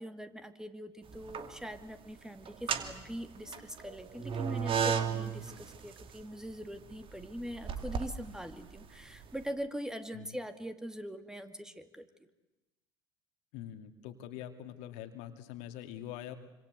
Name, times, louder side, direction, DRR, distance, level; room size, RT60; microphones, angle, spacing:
voice 1, 0.0-12.1, equal, 5° right, 8 dB, 2.3 m, -42 dB
sound 1, 1.1-1.8 2.5-9.3, right 7 dB, 45° right, 2.6 m, -35 dB
voice 2, 13.5-16.4, left 11 dB, 65° left, 7 dB, 2.4 m, -44 dB
26.5 x 26.0 x 8.2 m, 1.0 s
hypercardioid pair, 65°, 13 cm